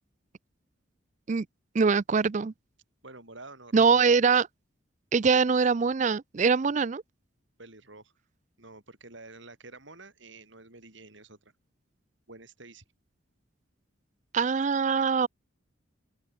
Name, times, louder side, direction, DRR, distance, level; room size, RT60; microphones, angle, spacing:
voice 1, 1.7-2.5 3.7-4.5 5.1-7.0 14.3-15.3, right 5 dB, 35° right, 0.4 m, -23 dB
voice 2, 3.0-4.0 5.6-5.7 7.6-8.1 8.6-11.5 12.3-12.8, right 3 dB, 65° right, 4.4 m, -49 dB
open air
head